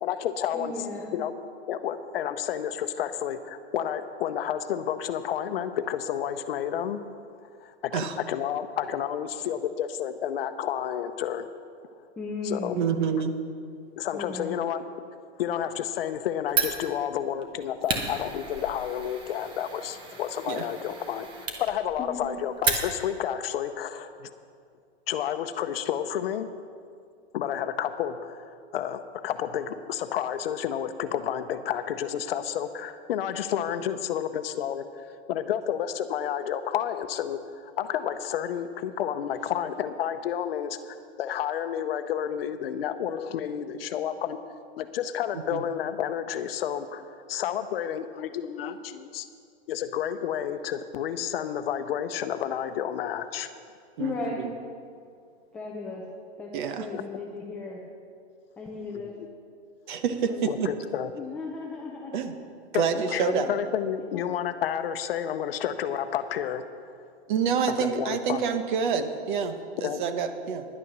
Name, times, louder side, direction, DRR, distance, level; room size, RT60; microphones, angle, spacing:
voice 1, 0.0-0.7 1.1-1.3 1.7-7.0 7.6-11.5 12.4-12.8 14.0-14.8 15.4-21.3 21.6-24.3 25.1-26.5 27.3-44.4 44.8-49.3 49.7-53.5 56.9-57.0 58.9-59.0 60.5-61.1 62.7-66.7 67.7-68.4 69.8-70.0, left 9 dB, 60° left, 10 dB, 0.8 m, -30 dB
voice 2, 0.5-1.1 12.2-12.8 14.1-14.6 22.0-22.3 54.0-54.5 55.5-56.1 56.4-57.8 58.6-59.1 60.3-60.7 61.2-62.2 62.9-63.1 63.5-63.6 64.1-64.2, left 4 dB, 5° left, -3 dB, 0.4 m, -36 dB
voice 3, 12.8-13.3 20.5-20.6 45.5-45.6 54.0-54.1 56.5-56.8 59.9-60.3 60.6-60.7 62.1-62.3 62.7-63.5 67.3-70.6, right 6 dB, 45° right, 8 dB, 1.0 m, -27 dB
Fire, 16.5-23.3, right 5 dB, 15° right, 0.8 m, -33 dB
11.0 x 9.1 x 6.1 m, 2.3 s
hypercardioid pair, 160°, 33 cm